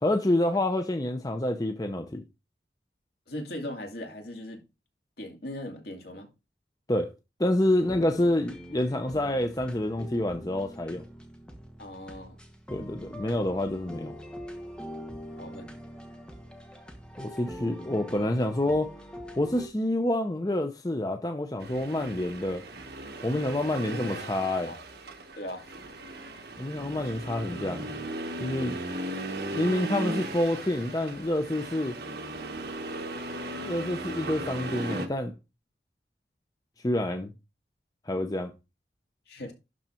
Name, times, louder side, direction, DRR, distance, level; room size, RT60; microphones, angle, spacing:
voice 1, 0.0-2.2 6.9-7.1 7.4-11.1 12.7-14.1 17.2-18.9 19.4-22.6 23.2-24.7 26.6-27.9 28.4-28.8 29.5-32.0 33.6-35.3 36.8-37.3 38.1-38.5, left 1 dB, 20° left, 0.6 m, -28 dB
voice 2, 3.3-4.6 5.2-6.3 11.8-12.4 15.3-15.7 23.9-24.8 25.4-25.7 28.6-29.0 39.3-39.5, left 1 dB, 65° left, 2.4 m, -39 dB
sound 1, 7.8-19.7, equal, 5° left, 1.2 m, -43 dB
Accelerating revving vroom, 21.6-35.1, right 2 dB, 65° right, 1.3 m, -37 dB
11.5 x 4.0 x 4.4 m
head